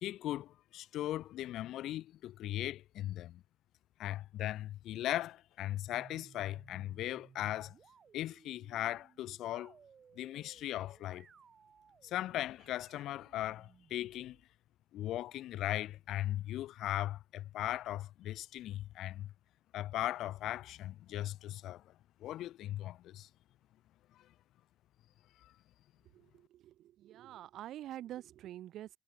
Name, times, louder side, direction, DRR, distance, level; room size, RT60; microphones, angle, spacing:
voice 1, 0.0-3.4 4.0-7.7 8.1-9.7 10.2-11.3 12.0-14.4 14.9-19.3 19.7-21.8 22.2-23.3 25.4-25.5, left 13 dB, 85° left, 1.5 m, -38 dB
sound 1, 5.8-14.4, right 7 dB, 50° right, 7.2 m, -62 dB
voice 2, 26.1-28.9, right 13 dB, 80° right, 0.9 m, -47 dB
cardioid pair, 90°, 0 cm